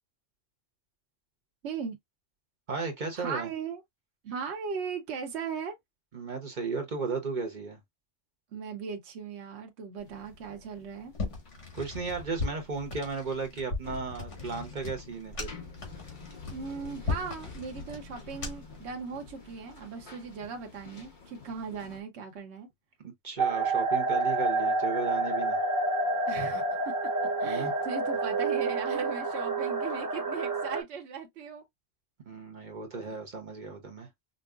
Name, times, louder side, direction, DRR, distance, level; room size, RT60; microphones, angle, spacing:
voice 1, 1.6-2.0 3.1-3.8 4.2-5.7 8.5-11.1 16.5-22.7 26.3-26.9 27.4-31.6 33.1-33.2, right 6 dB, 65° right, 1.1 m, -38 dB
voice 2, 2.7-3.5 6.1-7.8 11.7-15.5 23.2-25.6 27.4-27.7 32.3-34.1, right 4 dB, 45° right, 0.9 m, -35 dB
sound 1, 10.0-22.0, left 4 dB, 40° left, 1.1 m, -49 dB
sound 2, 11.1-18.8, left 3 dB, 70° left, 2.0 m, -38 dB
sound 3, 23.4-30.8, right 3 dB, 20° right, 0.7 m, -28 dB
5.2 x 2.0 x 2.4 m
omnidirectional pair, 1.3 m